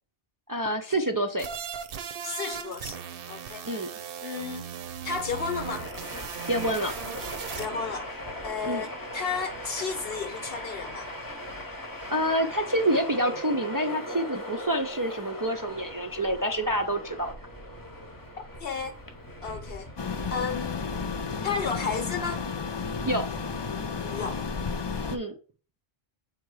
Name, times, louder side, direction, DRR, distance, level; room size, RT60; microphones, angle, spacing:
voice 1, 0.5-1.5 3.7-3.9 6.5-6.9 8.6-8.9 12.1-17.3 23.0-23.3 25.1-25.4, right 1 dB, 30° right, 0.4 m, -27 dB
sound 1, 1.4-7.7, right 8 dB, 65° right, 0.8 m, -38 dB
voice 2, 2.2-3.7 4.2-4.7 5.0-5.9 7.5-8.2 8.4-11.1 18.6-19.0 19.4-19.9 20.3-20.9 21.4-22.4 24.0-24.5, left 5 dB, 65° left, 0.8 m, -33 dB
Train, 4.9-22.5, equal, 20° left, 0.8 m, -39 dB
sound 2, 20.0-25.2, left 5 dB, 40° left, 0.4 m, -32 dB
7.3 x 2.9 x 4.7 m
omnidirectional pair, 1.1 m